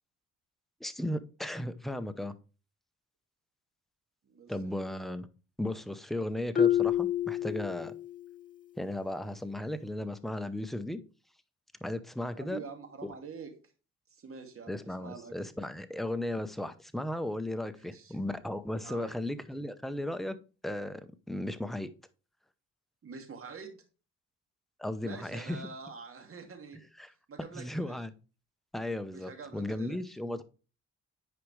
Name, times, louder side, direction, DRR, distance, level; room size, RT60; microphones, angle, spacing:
voice 1, 0.8-2.3 4.5-5.3 5.6-7.9 8.8-11.0 11.8-12.6 13.0-13.1 14.7-20.4 20.6-21.9 24.8-25.6 27.0-27.1 27.5-28.1 28.7-30.4, left 1 dB, ahead, 10 dB, 0.7 m, -35 dB
voice 2, 4.2-4.7 12.3-13.5 14.1-15.5 17.7-18.2 18.8-19.1 23.0-23.8 25.0-26.8 27.3-28.0 29.1-30.2, right 5 dB, 45° right, 4 dB, 2.2 m, -46 dB
Marimba xylophone, 6.5-8.3, left 10 dB, 25° left, 0.4 m, -28 dB
9.5 x 4.9 x 3.2 m, 0.34 s
cardioid pair, 90°, 30 cm